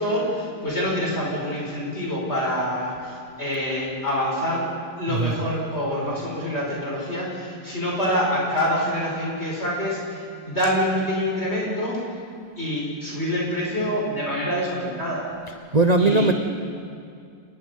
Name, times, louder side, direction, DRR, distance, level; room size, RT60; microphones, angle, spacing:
voice 1, 0.0-4.7 5.0-12.2 12.6-15.3 16.0-16.3, equal, 30° left, -4 dB, 5.3 m, -26 dB
voice 2, 5.1-5.4 15.7-16.3, right 3 dB, 35° right, 5 dB, 0.7 m, -19 dB
29.5 x 21.5 x 5.6 m, 2.4 s
omnidirectional pair, 2.2 m